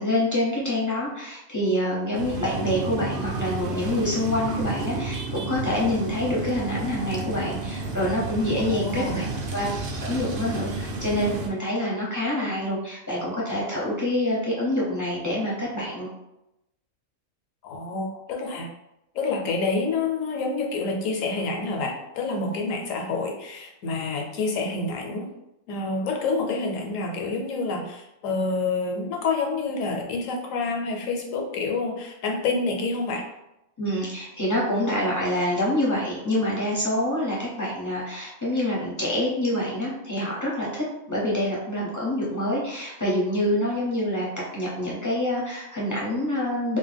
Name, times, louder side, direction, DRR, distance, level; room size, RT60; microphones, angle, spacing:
voice 1, 0.0-9.2 9.5-9.7 10.0-16.1 33.8-44.3 44.5-46.8, left 1 dB, 25° left, -5 dB, 0.4 m, -26 dB
sound 1, 2.1-11.5, right 2 dB, 60° right, 0.6 m, -31 dB
voice 2, 8.7-9.2 17.6-18.7 19.1-25.3 25.7-33.2, left 3 dB, 80° left, 1 dB, 1.0 m, -28 dB
2.5 x 2.2 x 3.3 m, 0.88 s
omnidirectional pair, 1.4 m